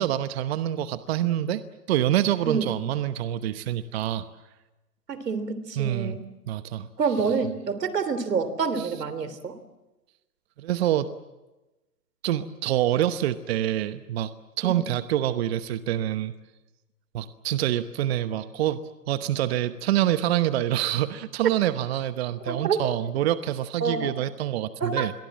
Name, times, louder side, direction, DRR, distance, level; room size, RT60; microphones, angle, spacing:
voice 1, 0.0-1.6 1.9-4.3 5.8-6.2 6.5-6.9 8.8-9.0 10.6-11.1 12.2-16.3 17.1-25.1, right 12 dB, 40° right, 12 dB, 1.0 m, -26 dB
voice 2, 5.1-6.2 7.0-9.6 14.6-14.8 22.5-22.8 23.8-24.1 24.8-25.1, right 5 dB, 80° right, 13 dB, 3.5 m, -27 dB
27.5 x 22.5 x 7.5 m, 1.1 s
hypercardioid pair, 145°, 47 cm